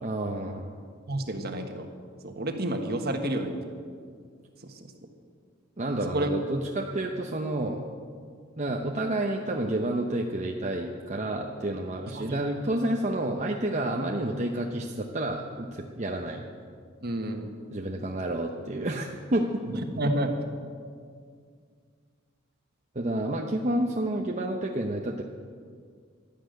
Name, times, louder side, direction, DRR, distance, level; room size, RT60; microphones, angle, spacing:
voice 1, 0.0-0.7 5.8-7.9 8.6-16.4 17.7-19.5 22.9-25.2, right 1 dB, 35° right, 1 dB, 0.9 m, -30 dB
voice 2, 1.1-1.9 2.2-3.6 4.6-4.7 6.1-6.3 12.1-12.4 17.0-17.5 19.7-20.3, right 1 dB, 50° right, 5 dB, 1.6 m, -30 dB
12.0 x 12.0 x 9.2 m, 2.1 s
head